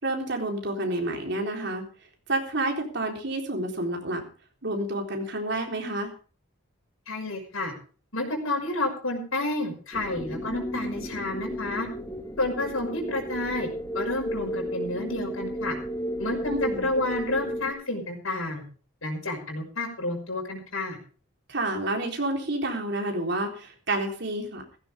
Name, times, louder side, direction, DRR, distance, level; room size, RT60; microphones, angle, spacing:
voice 1, 0.0-1.8 2.3-4.2 4.6-6.1 16.5-16.9 21.5-24.6, right 1 dB, 55° right, 2 dB, 3.9 m, -29 dB
voice 2, 7.1-7.7 8.1-11.9 12.4-13.7 13.9-15.8 16.2-18.6 19.0-21.0, left 2 dB, 75° left, 2 dB, 5.8 m, -30 dB
sound 1, 9.9-17.7, equal, 15° left, 1.8 m, -33 dB
15.5 x 15.0 x 3.6 m, 0.39 s
head